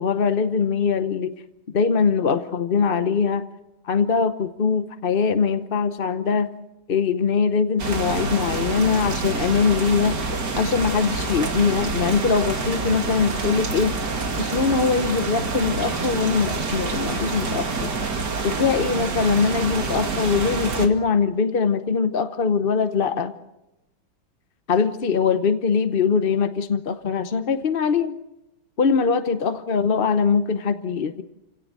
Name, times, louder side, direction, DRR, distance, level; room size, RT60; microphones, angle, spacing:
voice 1, 0.0-1.3 1.7-3.4 3.8-6.5 6.9-10.2 10.5-13.9 14.4-17.9 18.4-23.3 24.7-28.1 28.8-31.2, left 5 dB, 45° left, 9 dB, 0.7 m, -22 dB
sound 1, 7.8-20.9, right 3 dB, 60° right, 2.7 m, -27 dB
28.5 x 17.5 x 7.5 m, 0.92 s
omnidirectional pair, 2.1 m